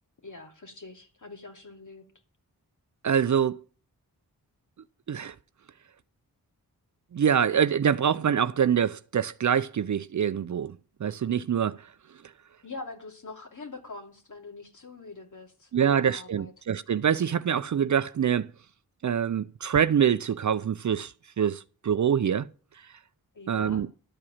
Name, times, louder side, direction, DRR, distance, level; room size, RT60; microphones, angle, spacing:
voice 1, 0.2-2.0 12.6-16.5 23.3-23.8, left 3 dB, 50° left, 2.7 m, -44 dB
voice 2, 3.0-3.6 5.1-5.3 7.1-10.8 11.0-11.9 15.7-18.5 19.0-22.5 23.5-23.9, right 8 dB, 50° right, 0.5 m, -25 dB
12.5 x 4.8 x 8.6 m
cardioid pair, 45°, 38 cm